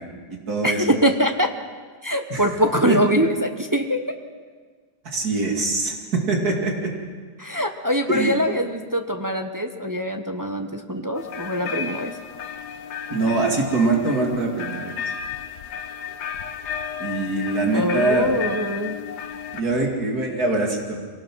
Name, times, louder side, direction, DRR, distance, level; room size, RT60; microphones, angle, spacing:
voice 1, 0.0-1.0 2.3-2.4 2.9-3.0 5.1-5.9 6.3-6.9 8.1-8.3 13.1-15.0 17.0-18.3 19.5-21.0, right 2 dB, 65° right, 1 dB, 2.9 m, -23 dB
voice 2, 0.6-1.5 2.0-4.0 7.4-12.1 17.7-19.0, equal, 15° right, 5 dB, 0.7 m, -23 dB
sound 1, 11.2-19.6, left 7 dB, 85° left, 1.5 m, -33 dB
24.0 x 18.5 x 6.2 m, 1.5 s
omnidirectional pair, 1.8 m